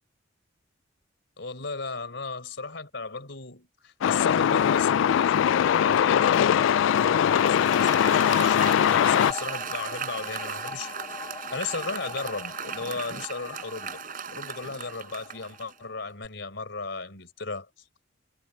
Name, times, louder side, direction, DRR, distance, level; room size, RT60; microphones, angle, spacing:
voice 1, 1.4-10.9 11.5-14.0 14.3-17.7, left 4 dB, 70° left, 4.4 m, -35 dB
Truck, 4.0-9.3, left 9 dB, 85° left, 0.3 m, -21 dB
sound 1, 4.7-15.9 16.2-16.3, left 5 dB, 25° left, 2.1 m, -42 dB
Applause, 6.9-15.8, right 7 dB, 45° right, 6.2 m, -38 dB
head